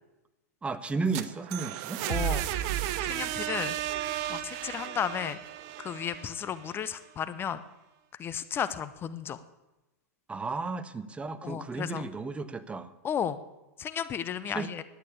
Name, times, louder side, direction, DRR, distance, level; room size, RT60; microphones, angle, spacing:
voice 1, 0.6-2.0 10.3-12.9 14.5-14.7, right 4 dB, 15° right, 12 dB, 0.7 m, -33 dB
sound 1, 0.9-6.7, right 12 dB, 45° right, 0.9 m, -33 dB
voice 2, 2.1-2.4 3.0-3.8 4.3-5.4 5.8-7.6 8.2-9.4 11.4-12.1 13.0-13.4 13.8-14.8, left 8 dB, 25° left, 13 dB, 0.6 m, -33 dB
11.0 x 9.0 x 8.3 m, 1.0 s
hypercardioid pair, 100°, 9 cm